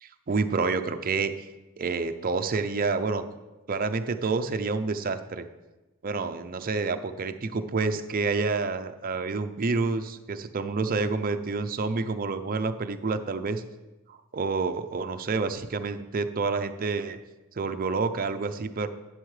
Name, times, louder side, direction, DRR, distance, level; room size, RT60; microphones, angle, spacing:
voice 1, 0.0-1.5 1.8-3.2 3.7-5.4 6.0-13.6 14.1-17.2 17.6-18.9, right 4 dB, 40° right, 8 dB, 0.5 m, -28 dB
11.5 x 7.9 x 3.2 m, 1.1 s
head